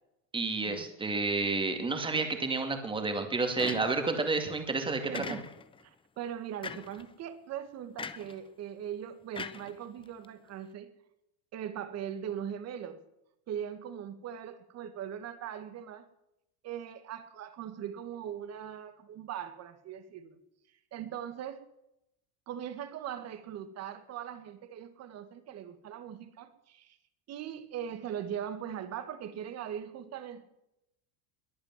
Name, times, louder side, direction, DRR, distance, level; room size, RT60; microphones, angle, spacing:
voice 1, 0.3-5.0, right 3 dB, 10° right, 6 dB, 2.4 m, -30 dB
sound 1, 3.6-4.2 5.1-5.8 6.6-7.0 8.0-8.4 9.3-10.2, left 5 dB, 15° left, 0.6 m, -41 dB
voice 2, 5.1-5.5 5.8-10.9 11.5-13.0 13.5-16.0 16.6-20.4 20.9-21.6 22.5-27.0 27.3-30.4, right 9 dB, 40° right, 11 dB, 1.9 m, -40 dB
22.0 x 8.8 x 7.5 m, 0.84 s
cardioid pair, 150°, 41 cm